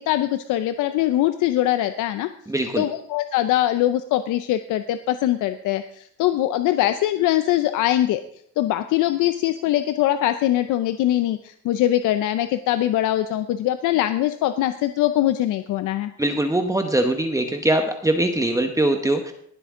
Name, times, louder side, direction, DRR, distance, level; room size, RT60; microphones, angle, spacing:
voice 1, 0.0-2.3 2.8-8.2 8.6-16.1, left 13 dB, 90° left, 11 dB, 0.6 m, -22 dB
voice 2, 2.5-2.8 16.2-19.3, right 1 dB, 10° right, 5 dB, 1.0 m, -22 dB
18.5 x 7.9 x 3.7 m, 0.66 s
cardioid pair, 90°, 30 cm